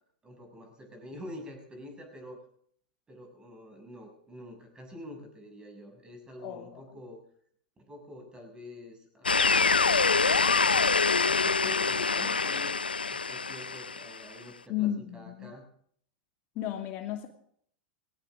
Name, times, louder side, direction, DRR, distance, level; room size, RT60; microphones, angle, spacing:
voice 1, 0.2-2.4 3.1-7.2 7.8-9.9 10.5-12.8 13.1-15.7, left 1 dB, 15° right, 3 dB, 6.8 m, -47 dB
voice 2, 6.4-6.8 14.7-15.5 16.5-17.3, left 12 dB, 45° left, 5 dB, 2.4 m, -33 dB
sound 1, 9.2-14.2, left 4 dB, 90° left, 0.7 m, -25 dB
19.5 x 18.5 x 3.9 m, 0.62 s
hypercardioid pair, 100°, 5 cm